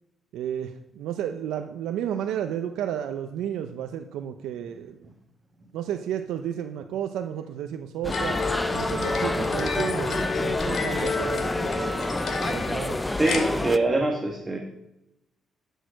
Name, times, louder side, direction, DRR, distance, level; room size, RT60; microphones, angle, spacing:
voice 1, 0.3-5.1 5.7-8.4 8.7-11.9 12.4-13.0, right 10 dB, 85° right, 7 dB, 0.6 m, -32 dB
sound 1, 8.0-13.8, left 1 dB, 10° left, 0.6 m, -28 dB
sound 2, 8.1-13.4, left 4 dB, 60° left, 2.5 m, -30 dB
voice 2, 13.2-14.6, right 2 dB, 20° right, 2 dB, 1.7 m, -24 dB
13.0 x 6.5 x 6.4 m, 0.90 s
cardioid pair, 90°, 0 cm